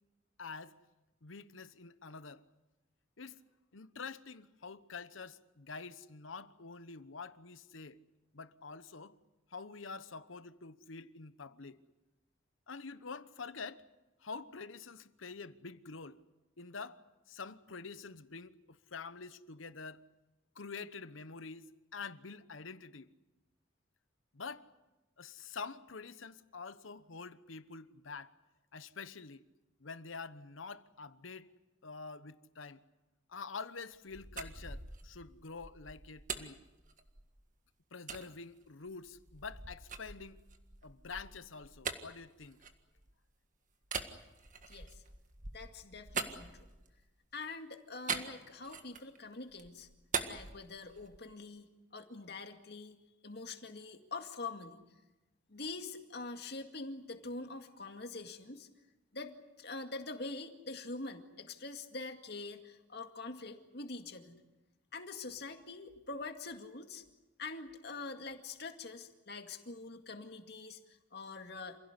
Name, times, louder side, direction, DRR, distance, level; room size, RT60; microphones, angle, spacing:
voice 1, 0.4-0.8 1.2-2.4 3.2-3.4 3.7-8.0 8.3-9.2 9.5-11.8 12.7-13.8 14.2-16.2 16.6-20.0 20.5-21.7 21.9-23.1 24.3-24.7 25.2-28.3 28.7-29.4 29.8-31.5 31.8-32.8 33.3-36.6 37.9-40.4 40.8-42.6, left 4 dB, 90° left, 1.1 m, -47 dB
sound 1, 33.9-37.5 38.1-38.3 38.8-43.3 43.8-47.1 48.1-49.2 49.5-51.3, right 5 dB, 40° right, 1.7 m, -43 dB
voice 2, 44.7-45.0 45.5-46.7 47.3-49.9 50.3-53.0 53.2-54.8 55.5-58.7 59.1-64.4 64.9-67.0 67.4-71.8, left 3 dB, 55° left, 2.2 m, -45 dB
27.5 x 16.5 x 9.7 m
head